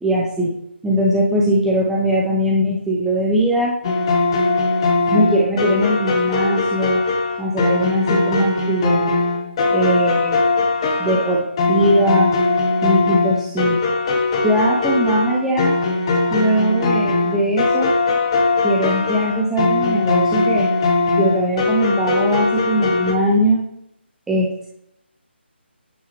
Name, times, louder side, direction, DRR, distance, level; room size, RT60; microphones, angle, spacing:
voice 1, 0.0-0.5 0.8-3.7 5.1-7.0 7.4-9.2 9.7-10.4 11.0-12.3 12.8-13.8 14.4-15.7 16.3-17.9 18.6-20.7 21.2-23.6 24.3-24.7, right 1 dB, 5° right, -5 dB, 0.8 m, -20 dB
sound 1, 3.8-23.1, left 3 dB, 25° left, 1.2 m, -20 dB
10.0 x 8.5 x 3.4 m, 0.74 s
figure-of-eight pair, 150°, 6 cm